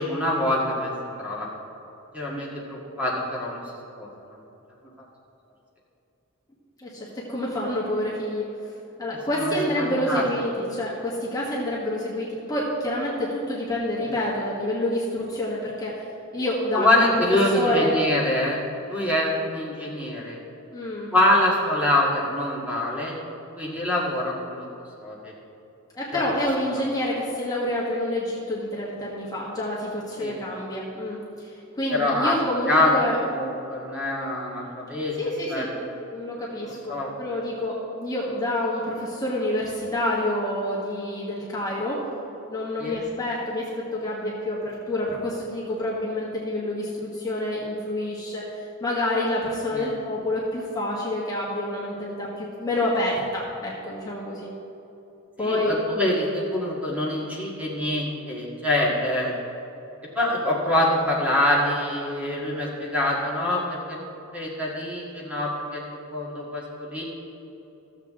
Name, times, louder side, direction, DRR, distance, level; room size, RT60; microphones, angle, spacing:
voice 1, 0.0-1.5 2.1-3.6 3.9-4.1 9.4-10.3 14.0-14.1 16.7-18.6 18.9-20.4 21.1-23.1 23.5-24.7 25.0-25.3 26.1-26.2 30.2-30.3 31.9-32.4 32.7-32.9 33.3-35.1 35.5-35.7 36.9-37.1 42.8-42.9 49.7-49.9 55.4-59.3 60.1-64.0 64.3-65.8 66.1-67.0, left 1 dB, 5° right, -5 dB, 1.7 m, -25 dB
voice 2, 6.8-8.5 9.0-17.9 20.7-21.1 25.9-33.2 35.1-35.7 36.1-42.0 42.5-54.5 55.4-55.8, left 1 dB, 15° left, -6 dB, 1.4 m, -28 dB
14.5 x 7.3 x 3.7 m, 2.9 s
head